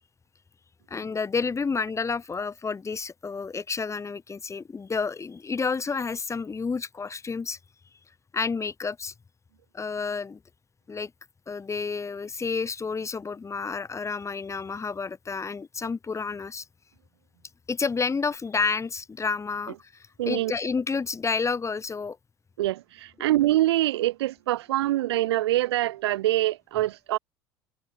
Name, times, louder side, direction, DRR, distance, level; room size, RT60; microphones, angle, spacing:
voice 1, 0.9-7.6 8.3-9.1 9.7-10.4 10.9-11.1 11.5-16.6 17.7-22.2, left 5 dB, 20° left, 1.5 m, -30 dB
voice 2, 20.2-20.5 22.6-27.2, right 15 dB, 75° right, 1.2 m, -25 dB
figure-of-eight pair, 65°, 14 cm